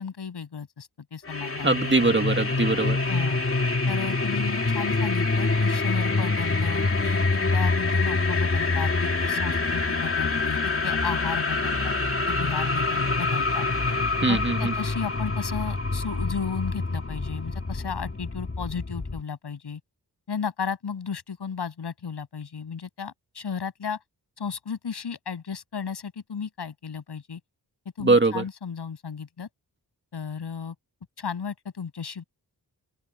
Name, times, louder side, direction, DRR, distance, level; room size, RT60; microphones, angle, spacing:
voice 1, 0.0-1.7 3.1-3.4 3.9-7.2 7.5-11.9 12.3-13.7 14.3-19.8 20.3-24.0 24.4-27.4 28.0-29.5 30.1-30.7 31.2-32.2, left 6 dB, 90° left, 7.4 m, -34 dB
sound 1, 1.3-19.2, left 3 dB, 35° left, 2.7 m, -26 dB
voice 2, 1.6-3.0 14.2-14.7 28.0-28.4, right 3 dB, 30° right, 2.1 m, -22 dB
open air
wide cardioid pair, 125°, 39 cm